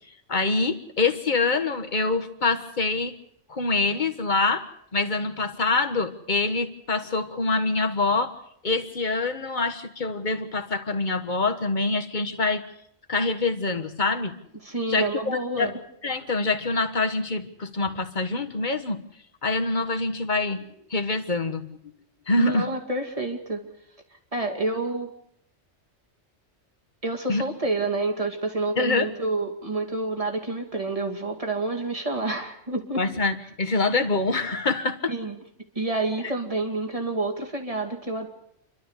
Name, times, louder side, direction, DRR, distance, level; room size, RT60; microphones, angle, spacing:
voice 1, 0.3-3.1 3.5-4.7 4.9-8.4 8.6-12.6 13.1-14.3 14.9-15.7 16.0-19.0 19.4-20.6 20.9-21.7 22.3-22.7 27.3-27.4 28.8-29.1 33.0-35.1, left 3 dB, 40° left, 7 dB, 1.5 m, -25 dB
voice 2, 14.6-15.7 22.4-23.6 24.3-25.1 27.0-33.0 35.1-35.3 35.8-38.3, right 2 dB, 30° right, 3 dB, 2.6 m, -28 dB
28.5 x 12.5 x 8.2 m, 0.69 s
omnidirectional pair, 1.2 m